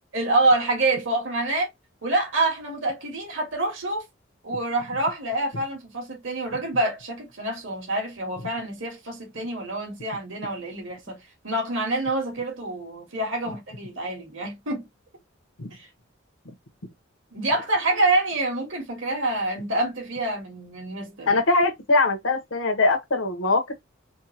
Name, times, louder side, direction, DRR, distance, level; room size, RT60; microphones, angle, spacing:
voice 1, 0.1-1.7 2.0-4.0 4.4-11.2 11.4-14.9 15.7-15.9 17.3-21.4, right 2 dB, 75° right, 2.1 m, -26 dB
voice 2, 21.3-23.7, left 3 dB, 90° left, 1.1 m, -22 dB
4.4 x 2.2 x 2.8 m
head